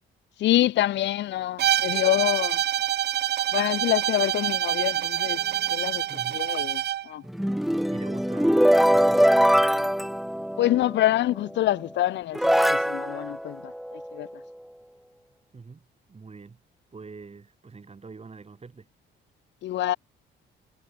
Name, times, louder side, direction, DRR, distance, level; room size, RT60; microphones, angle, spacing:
voice 1, 0.4-2.6 3.5-5.4 5.7-6.0 6.3-7.2 10.6-14.3 19.6-20.0, left 14 dB, 65° left, 0.5 m, -26 dB
Bowed string instrument, 1.6-7.1, right 12 dB, 55° right, 0.6 m, -26 dB
voice 2, 6.1-6.5 7.9-9.7 15.5-16.6 16.9-18.9, right 4 dB, 30° right, 6.2 m, -44 dB
sound 1, 7.3-11.0 11.8-11.9 12.3-14.3, equal, ahead, 0.4 m, -22 dB
cardioid pair, 90°, 20 cm